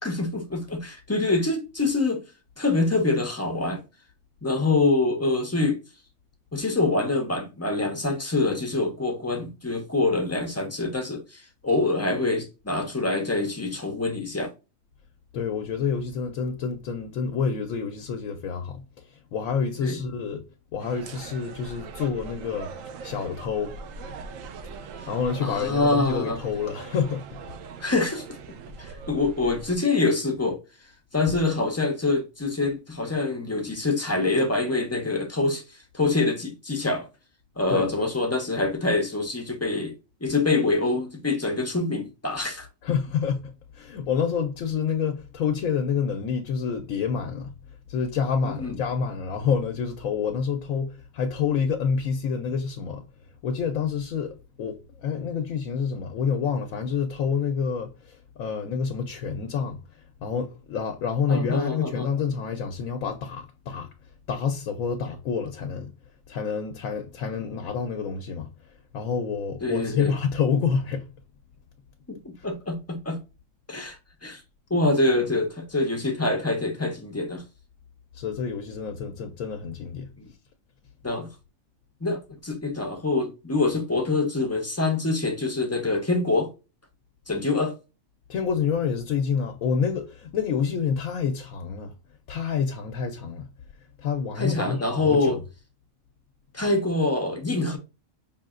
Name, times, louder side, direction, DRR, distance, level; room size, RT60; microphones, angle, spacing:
voice 1, 0.0-2.2 2.6-3.8 4.4-5.8 6.5-14.5 19.8-20.0 25.4-26.4 27.8-28.2 28.8-30.6 31.1-35.6 35.9-37.1 37.6-39.9 40.2-42.7 48.4-48.8 61.3-62.1 69.6-70.1 72.1-73.2 73.7-74.4 74.7-77.4 80.2-80.3 81.0-81.3 82.0-86.5 87.3-87.7 94.4-95.4 96.5-97.8, left 3 dB, 25° left, 0.3 m, -25 dB
voice 2, 15.3-20.4 20.7-22.7 23.0-23.8 25.1-27.5 37.7-37.9 42.8-47.5 47.9-53.0 53.4-63.9 64.3-65.9 66.3-71.1 72.4-72.5 78.1-80.1 88.3-91.9 92.3-93.5 94.0-95.4, left 6 dB, 90° left, 1.1 m, -28 dB
sound 1, 20.8-29.8, right 4 dB, 80° right, 1.0 m, -41 dB
5.1 x 2.8 x 2.4 m
omnidirectional pair, 1.4 m